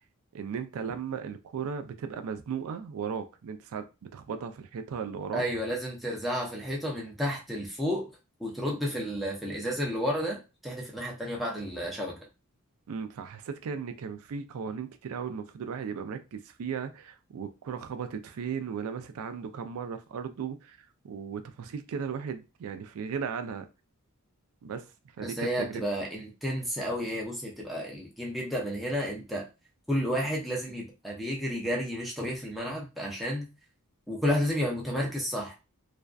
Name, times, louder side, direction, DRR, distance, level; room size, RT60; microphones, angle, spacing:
voice 1, 0.3-3.8 4.1-5.4 12.9-23.7 24.6-24.9 25.2-25.8, right 6 dB, 70° right, 0.4 m, -36 dB
voice 2, 5.3-8.1 8.4-12.2 25.2-29.5 29.9-33.5 34.1-35.5, equal, ahead, 0.4 m, -31 dB
2.5 x 2.2 x 2.3 m
head